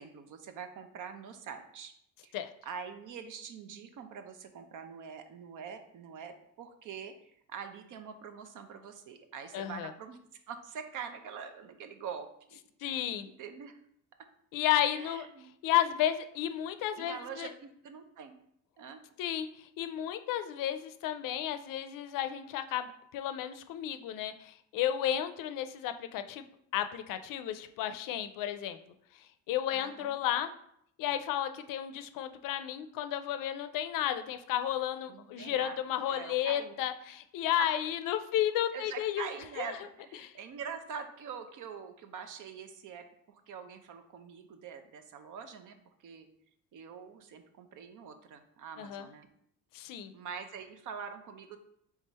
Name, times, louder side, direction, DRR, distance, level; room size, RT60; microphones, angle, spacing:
voice 1, 0.0-1.9 2.2-2.4 2.6-10.2 10.5-13.8 14.9-15.5 17.0-18.4 18.8-19.0 29.7-30.2 35.1-35.8 36.1-36.8 37.6-37.7 38.7-46.3 46.7-49.3 50.1-51.6, right 7 dB, 65° right, 8 dB, 0.7 m, -44 dB
voice 2, 9.5-9.9 12.8-13.3 14.5-15.3 15.6-17.5 19.2-19.5 19.8-26.5 26.7-28.8 29.5-30.5 31.0-39.3 39.6-39.7 40.2-40.3 48.8-49.1 49.7-50.1, left 11 dB, 75° left, 10 dB, 0.5 m, -32 dB
3.7 x 3.5 x 4.1 m, 0.71 s
cardioid pair, 100°, 33 cm